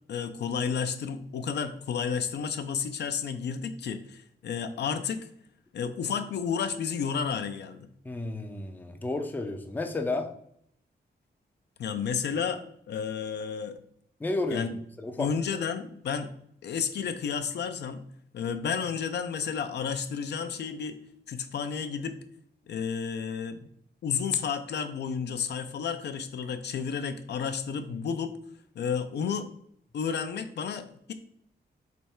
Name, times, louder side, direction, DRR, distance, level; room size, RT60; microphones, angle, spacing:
voice 1, 0.1-5.3 5.7-7.9 11.8-13.8 14.5-14.8 15.2-16.3 16.6-18.0 18.3-21.0 21.3-22.2 22.7-23.7 24.0-28.3 28.8-29.5 29.9-31.1, left 6 dB, 70° left, 9 dB, 0.4 m, -31 dB
voice 2, 8.0-10.3 14.2-14.7 15.0-15.3, left 2 dB, 10° left, 6 dB, 0.4 m, -32 dB
3.4 x 3.1 x 4.3 m, 0.68 s
wide cardioid pair, 120°, 18 cm